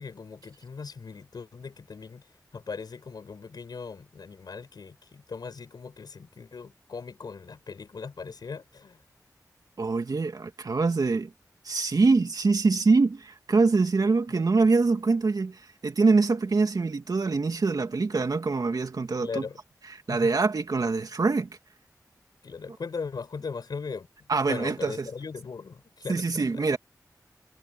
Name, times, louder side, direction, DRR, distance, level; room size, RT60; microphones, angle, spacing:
voice 1, 0.0-2.3 2.5-9.0 14.3-14.4 19.2-19.6 20.1-20.3 22.4-24.1 24.4-26.7, left 5 dB, 90° left, 5.4 m, -39 dB
voice 2, 9.8-11.3 11.6-19.4 20.1-21.5 24.3-25.1 26.1-26.8, right 3 dB, 65° right, 2.4 m, -24 dB
wide cardioid pair, 65°, 7 cm